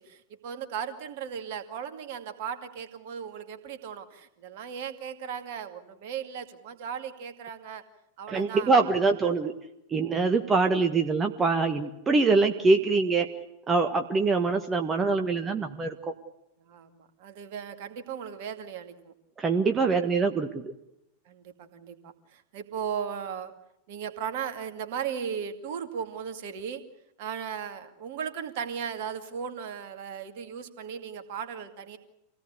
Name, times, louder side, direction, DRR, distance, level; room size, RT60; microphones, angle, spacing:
voice 1, 0.0-7.8 8.2-8.9 9.2-9.5 16.7-19.1 21.3-23.5 23.9-26.8 27.2-32.0, right 7 dB, 50° right, 8 dB, 2.3 m, -37 dB
voice 2, 8.3-9.5 9.9-13.3 13.7-15.9 19.4-20.7, right 4 dB, 20° right, 5 dB, 1.5 m, -24 dB
26.5 x 18.0 x 8.3 m, 0.85 s
figure-of-eight pair, 90°, 0 cm